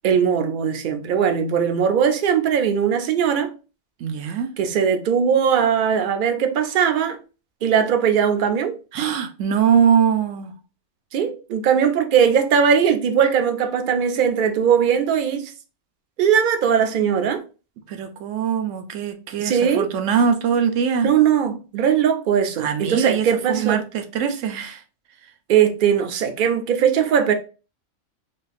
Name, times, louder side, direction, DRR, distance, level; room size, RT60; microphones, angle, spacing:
voice 1, 0.0-3.5 4.6-7.2 7.6-8.8 11.1-15.5 16.2-17.4 19.4-19.9 21.0-23.8 25.5-27.3, right 7 dB, 60° right, 0.5 m, -19 dB
voice 2, 4.0-4.5 8.9-10.5 17.9-21.1 22.6-24.8, right 7 dB, 80° right, 0.9 m, -22 dB
4.2 x 2.4 x 2.4 m
omnidirectional pair, 1.3 m